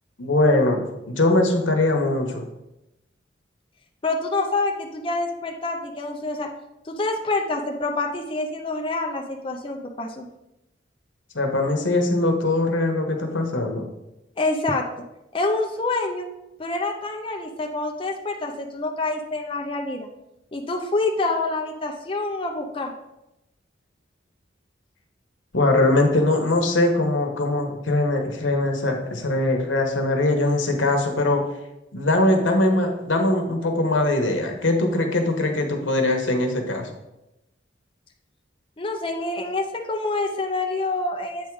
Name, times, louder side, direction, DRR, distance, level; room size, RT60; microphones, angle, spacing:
voice 1, 0.2-0.8 1.1-2.4 11.3-13.9 25.5-31.4 31.9-36.9, left 2 dB, 90° left, 3 dB, 1.1 m, -21 dB
voice 2, 4.0-6.5 6.8-10.3 14.4-14.8 15.3-16.3 16.6-20.1 20.5-22.9 38.8-41.5, left 2 dB, 30° left, 2 dB, 0.5 m, -27 dB
8.2 x 3.6 x 4.7 m, 0.91 s
head